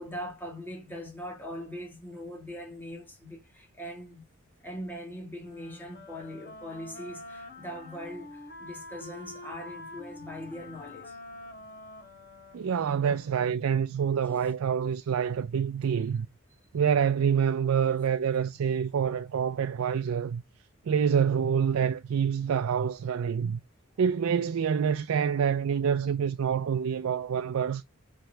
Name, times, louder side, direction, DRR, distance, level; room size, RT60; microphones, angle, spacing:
voice 1, 0.0-4.2 4.6-11.2, equal, 10° left, 2.1 m, -41 dB
Wind instrument woodwind instrument, 5.4-13.6, left 2 dB, 45° left, 2.8 m, -46 dB
voice 2, 12.5-16.3 16.7-20.4 20.9-23.6 24.0-27.8, right 7 dB, 90° right, 0.4 m, -27 dB
5.0 x 4.4 x 4.4 m
head